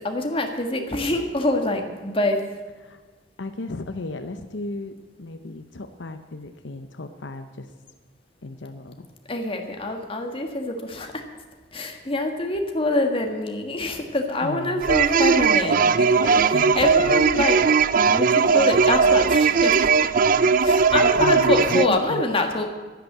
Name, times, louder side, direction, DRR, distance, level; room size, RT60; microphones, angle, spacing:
voice 1, 0.0-2.5 9.3-11.2 11.7-17.6 18.1-20.1 20.6-22.7, left 2 dB, 30° left, 3 dB, 1.8 m, -25 dB
voice 2, 3.4-7.7 8.4-9.1 14.4-14.8 16.4-17.2 21.2-22.2, left 2 dB, 80° left, 8 dB, 0.9 m, -35 dB
sound 1, 14.8-21.9, right 5 dB, 50° right, 0.5 m, -18 dB
11.5 x 10.0 x 8.1 m, 1.4 s
head